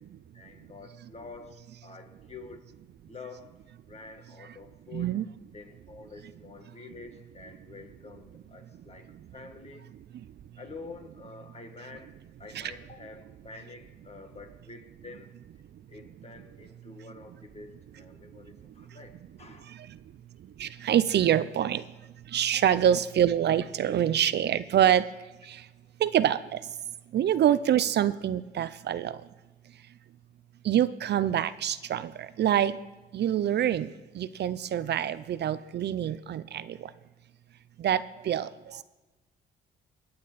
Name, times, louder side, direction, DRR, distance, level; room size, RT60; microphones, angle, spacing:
voice 1, 0.3-1.5 1.8-2.7 3.1-3.5 3.9-5.2 5.5-9.9 10.6-12.1 12.4-15.3 15.9-19.1 19.4-19.8 22.5-22.6, left 4 dB, 30° left, 5 dB, 2.0 m, -47 dB
voice 2, 4.9-5.2 12.5-12.7 19.7-20.0 20.6-21.9 22.3-25.1 25.4-25.7 26.0-26.7 27.1-29.2 30.6-32.8 33.1-33.9 34.1-36.9 37.8-38.8, right 10 dB, 60° right, 15 dB, 0.5 m, -26 dB
18.0 x 9.5 x 4.1 m, 1.1 s
cardioid pair, 90°, 20 cm